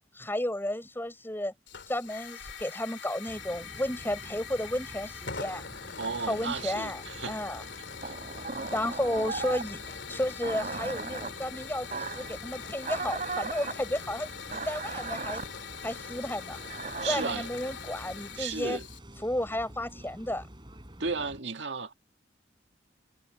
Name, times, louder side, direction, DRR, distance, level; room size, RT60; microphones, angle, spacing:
voice 1, 0.1-1.5 1.9-5.7 6.3-7.0 7.3-7.6 8.7-15.4 15.8-16.6 17.0-18.8 19.2-20.5, left 1 dB, 10° left, 6.7 m, -33 dB
Hiss / Fire, 1.7-19.0, left 6 dB, 70° left, 2.8 m, -43 dB
sound 1, 3.3-21.4, equal, 25° right, 6.2 m, -49 dB
voice 2, 6.0-7.4 8.0-8.1 17.0-17.5 18.4-18.8 21.0-21.9, right 4 dB, 75° right, 2.0 m, -34 dB
sound 2, 8.0-9.7 10.4-11.3 11.9-12.3 12.8-13.7 14.5-15.4 16.5-17.3, right 4 dB, 45° right, 3.2 m, -36 dB
head